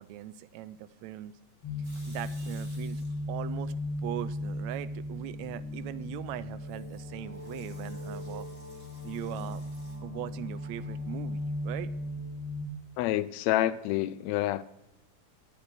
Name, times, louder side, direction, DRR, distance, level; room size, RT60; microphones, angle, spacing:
voice 1, 0.0-1.3 2.1-3.0 3.3-3.7 4.0-8.5 9.0-9.6 10.0-11.9, right 13 dB, 80° right, 1.6 m, -40 dB
sound 1, 1.6-12.7, left 1 dB, 50° left, 2.8 m, -37 dB
Water tap faucet / Sink (filling or washing) / Liquid, 1.8-3.5 3.9-4.6 6.7-10.0, right 1 dB, 20° right, 4.8 m, -57 dB
voice 2, 13.0-14.6, left 14 dB, 85° left, 1.5 m, -28 dB
10.5 x 8.1 x 5.9 m
omnidirectional pair, 3.6 m